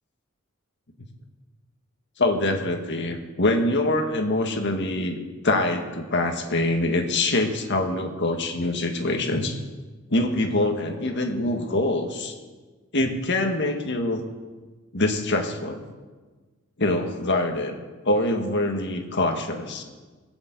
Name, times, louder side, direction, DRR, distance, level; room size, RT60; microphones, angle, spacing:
voice 1, 2.2-5.2 5.4-9.6 10.1-12.3 12.9-14.3 14.9-15.8 16.8-17.8 18.0-19.8, left 2 dB, 55° left, 4 dB, 1.8 m, -24 dB
20.5 x 7.1 x 8.3 m, 1.3 s
head